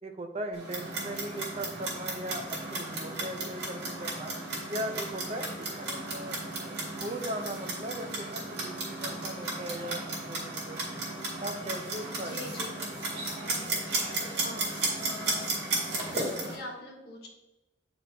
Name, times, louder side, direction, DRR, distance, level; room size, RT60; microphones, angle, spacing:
voice 1, 0.0-4.3 4.7-6.4 7.0-10.8 11.4-12.9, right 1 dB, 35° right, 4 dB, 0.6 m, -39 dB
Clock, 0.5-16.6, right 2 dB, 60° right, 2.0 m, -34 dB
voice 2, 12.2-12.7 14.3-15.5 16.1-17.3, left 2 dB, 60° left, -1 dB, 1.2 m, -43 dB
8.6 x 4.3 x 2.7 m, 1.0 s
head